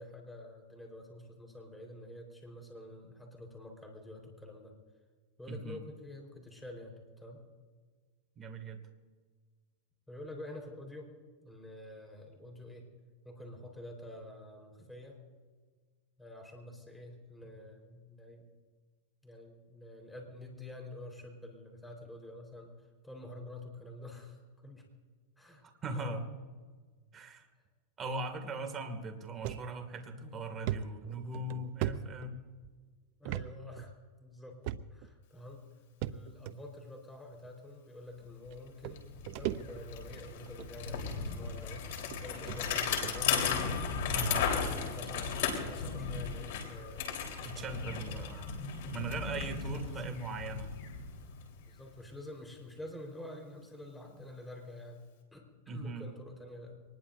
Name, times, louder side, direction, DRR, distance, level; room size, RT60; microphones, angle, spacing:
voice 1, 0.0-4.7 5.4-7.4 10.1-11.1 11.4-12.9 13.2-15.2 16.2-18.5 19.2-22.7 23.0-24.9 25.4-25.7 25.9-26.2 33.2-33.9 34.2-34.6 34.9-35.6 36.1-41.9 42.2-43.4 44.0-48.3 49.7-50.2 51.7-55.0 55.3-55.5 55.7-56.8, left 1 dB, 5° left, 2 dB, 4.3 m, -48 dB
voice 2, 5.5-5.8 8.4-8.8 25.6-26.2 27.1-27.5 28.0-32.4 44.1-44.5 47.4-48.6 48.9-50.7 55.7-56.1, right 2 dB, 20° right, 5 dB, 2.3 m, -39 dB
sound 1, 29.4-29.6 30.1-30.2 30.7-32.7 33.2-33.5 33.8-33.9 34.6-35.1 36.0-36.5 37.4-37.5 38.5-38.6 38.8-40.0 40.5-40.7 41.5-41.6 42.1-42.2 42.5-42.6 43.0-43.2, right 13 dB, 55° right, 0.6 m, -37 dB
Bicycle, 38.5-38.6 38.8-51.7, left 6 dB, 65° left, 4.0 m, -36 dB
24.0 x 20.5 x 2.7 m, 1.5 s
supercardioid pair, 140°, 0 cm